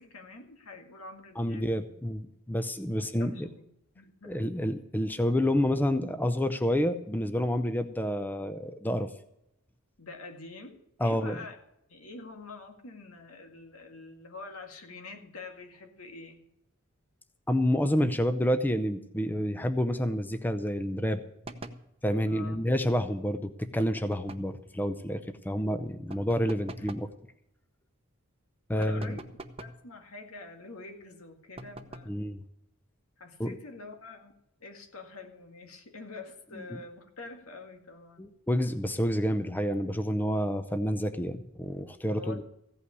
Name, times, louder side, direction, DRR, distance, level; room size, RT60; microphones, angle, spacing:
voice 1, 0.0-1.7 3.0-3.7 3.9-4.4 10.0-11.6 11.9-16.5 22.3-22.6 26.8-27.1 28.7-29.2 29.6-32.2 33.2-34.3 34.6-38.3 42.1-42.4, left 3 dB, 90° left, 4 dB, 2.0 m, -46 dB
voice 2, 1.4-3.5 4.2-9.1 11.0-11.4 17.5-21.2 22.0-27.1 28.7-29.2 32.1-32.4 33.4-33.6 38.2-42.4, equal, 10° left, 10 dB, 0.6 m, -29 dB
sound 1, 21.4-21.9 23.8-24.6 26.1-27.1 28.8-29.8 31.6-32.2, right 2 dB, 30° right, 0.8 m, -44 dB
15.5 x 5.7 x 9.6 m, 0.80 s
head